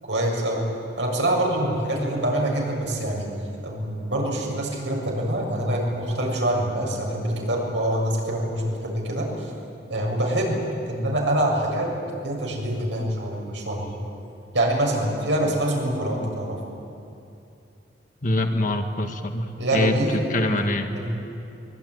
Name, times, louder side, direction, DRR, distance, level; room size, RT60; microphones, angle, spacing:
voice 1, 0.0-0.6 1.0-3.3 3.6-9.5 9.9-10.6 10.9-11.9 12.2-14.0 14.5-16.6 19.6-20.6 20.9-21.1, right 1 dB, 80° right, -1 dB, 7.2 m, -25 dB
voice 2, 18.2-19.9 20.3-20.9, left 1 dB, 45° left, 5 dB, 1.7 m, -24 dB
23.5 x 22.5 x 9.7 m, 2.6 s
head